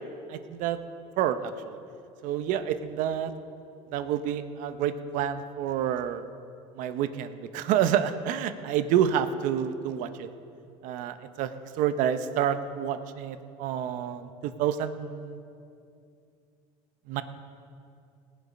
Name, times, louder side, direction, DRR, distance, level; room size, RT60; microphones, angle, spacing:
voice 1, 0.3-0.8 1.2-1.8 2.2-3.3 3.9-6.2 6.8-10.3 10.8-15.4 17.1-17.2, right 9 dB, 65° right, 10 dB, 0.8 m, -28 dB
18.5 x 8.1 x 5.2 m, 2.5 s
cardioid pair, 130°, 15 cm